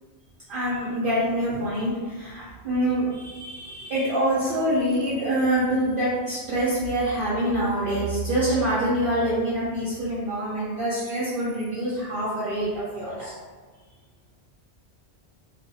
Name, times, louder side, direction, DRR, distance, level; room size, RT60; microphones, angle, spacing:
voice 1, 0.5-13.3, right 1 dB, 55° right, -10 dB, 0.7 m, -25 dB
2.4 x 2.1 x 2.7 m, 1.4 s
omnidirectional pair, 1.2 m